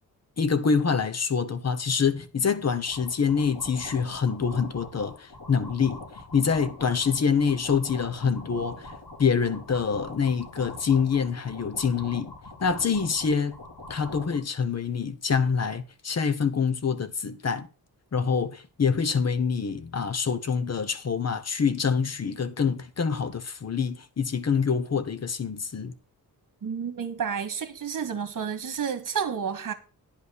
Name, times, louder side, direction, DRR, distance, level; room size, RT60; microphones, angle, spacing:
voice 1, 0.4-6.0 6.3-8.9 9.2-12.3 12.6-13.6 13.9-17.7 18.1-25.9, left 6 dB, 45° left, 1.0 m, -26 dB
sound 1, 2.8-14.4, left 2 dB, 70° left, 4.2 m, -43 dB
voice 2, 26.6-29.7, right 7 dB, 55° right, 1.6 m, -31 dB
10.0 x 5.6 x 6.2 m
wide cardioid pair, 140°, 37 cm